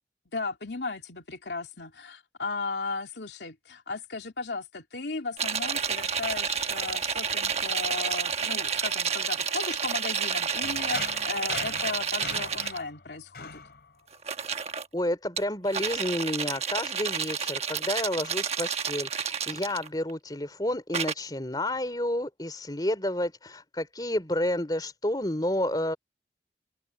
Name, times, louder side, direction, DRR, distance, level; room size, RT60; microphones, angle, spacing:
voice 1, 0.3-13.6, left 3 dB, 80° left, 2.7 m, -35 dB
sound 1, 5.4-12.8 14.1-14.9 15.4-20.1 20.9-21.1, right 7 dB, 35° right, 1.2 m, -30 dB
sound 2, 10.6-14.4, left 4 dB, 65° left, 3.7 m, -41 dB
voice 2, 14.9-26.0, left 1 dB, 25° left, 3.3 m, -30 dB
head